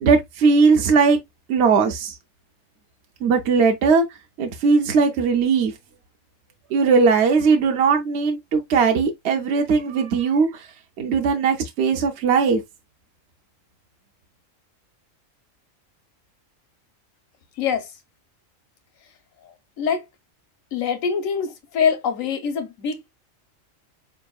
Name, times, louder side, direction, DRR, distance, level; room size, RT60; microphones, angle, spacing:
voice 1, 0.0-1.2 1.5-2.1 3.2-4.0 4.4-5.7 6.7-10.7 11.0-12.6, right 5 dB, 60° right, 0.8 m, -19 dB
voice 2, 17.6-17.9 19.4-20.0 20.7-23.1, left 6 dB, 85° left, 1.3 m, -24 dB
4.6 x 3.5 x 2.3 m
omnidirectional pair, 1.4 m